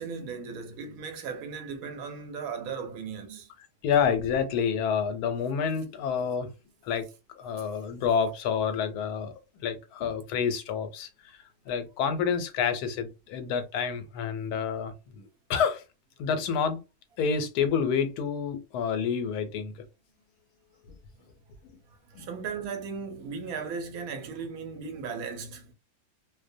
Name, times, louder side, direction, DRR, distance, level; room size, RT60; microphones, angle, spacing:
voice 1, 0.0-3.5 22.1-25.7, right 5 dB, 75° right, 1.0 m, -37 dB
voice 2, 3.8-6.5 6.8-7.1 7.4-11.4 11.7-15.8 16.2-16.8 17.2-19.7 22.1-22.3, left 6 dB, 90° left, 1.1 m, -28 dB
2.5 x 2.1 x 2.5 m
omnidirectional pair, 1.6 m